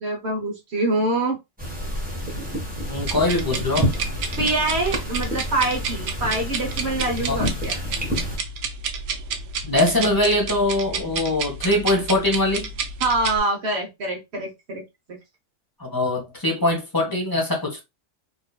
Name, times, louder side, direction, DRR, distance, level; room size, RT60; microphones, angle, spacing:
voice 1, 0.0-1.4 4.4-7.8 13.0-14.8, right 2 dB, 60° right, 1.1 m, -25 dB
sound 1, 1.6-8.4, equal, 5° right, 1.2 m, -29 dB
voice 2, 2.9-3.9 7.3-7.4 9.6-12.7 15.8-17.8, left 2 dB, 20° left, 1.0 m, -22 dB
sound 2, 3.0-13.4, right 4 dB, 80° right, 1.0 m, -31 dB
4.2 x 2.7 x 2.3 m
omnidirectional pair, 1.3 m